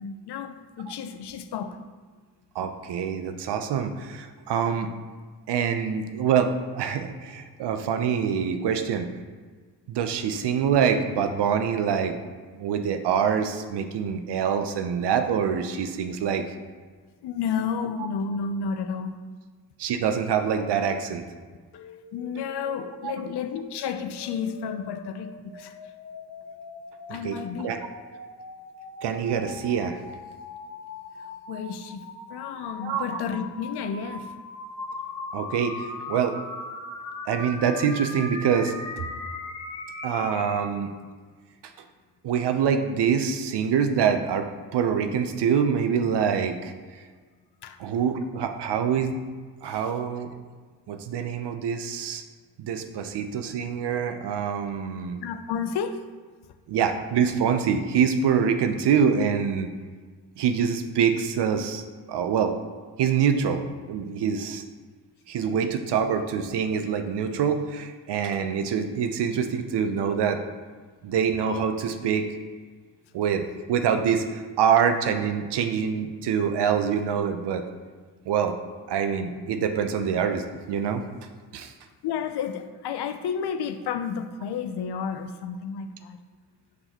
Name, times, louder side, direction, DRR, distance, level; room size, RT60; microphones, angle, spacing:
voice 1, 0.0-1.8 17.2-19.1 21.7-21.8 22.1-25.7 27.1-27.8 31.2-32.0 32.3-34.3 47.6-47.8 49.6-49.8 55.2-56.1 82.0-86.2, left 6 dB, 55° left, 8 dB, 0.6 m, -31 dB
voice 2, 2.5-4.9 5.5-9.1 9.9-12.2 12.5-16.4 19.8-21.2 23.0-23.2 27.1-27.9 29.0-30.0 32.8-33.2 35.3-36.4 37.3-39.0 40.0-40.9 42.2-46.7 47.8-49.2 49.6-50.3 50.9-52.2 52.6-55.2 56.7-59.7 60.4-62.5 63.0-63.6 63.9-64.6 65.3-70.4 71.0-72.3 73.1-77.7 78.3-78.6 78.9-81.0 81.5-81.7, right 7 dB, 60° right, 7 dB, 0.7 m, -25 dB
sound 1, 21.7-40.6, left 3 dB, 35° left, 1.3 m, -40 dB
6.4 x 5.4 x 2.9 m, 1.5 s
hypercardioid pair, 45°, 47 cm